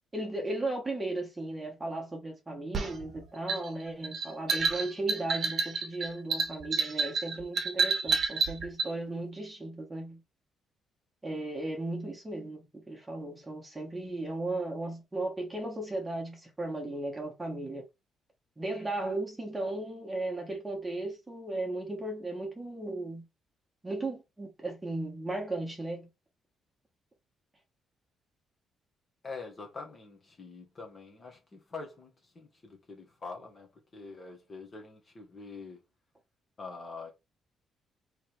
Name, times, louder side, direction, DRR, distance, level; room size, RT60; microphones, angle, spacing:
voice 1, 0.1-10.2 11.2-17.8 18.6-23.3 23.8-26.1, right 2 dB, 10° right, 1.3 m, -36 dB
sound 1, 2.7-8.9, right 4 dB, 45° right, 1.1 m, -29 dB
voice 2, 29.2-33.7 33.9-35.8 36.6-37.1, left 4 dB, 30° left, 1.2 m, -45 dB
3.4 x 3.2 x 4.4 m
cardioid pair, 150°, 0 cm